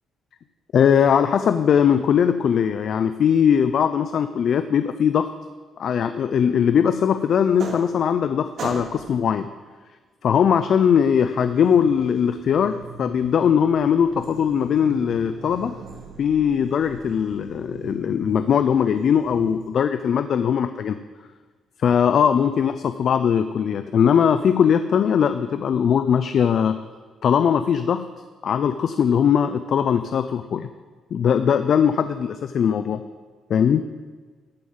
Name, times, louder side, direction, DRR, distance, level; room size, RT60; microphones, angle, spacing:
voice 1, 0.7-5.3 5.8-9.5 10.2-15.7 16.2-21.0 21.8-26.8 27.2-28.1 28.4-30.7 31.1-33.0 33.5-33.8, left 8 dB, 60° left, 10 dB, 0.5 m, -20 dB
sound 1, 7.3-8.3 8.6-9.2 10.4-19.7, right 3 dB, 65° right, 2.1 m, -40 dB
13.5 x 5.5 x 7.9 m, 1.4 s
cardioid pair, 90°, 0 cm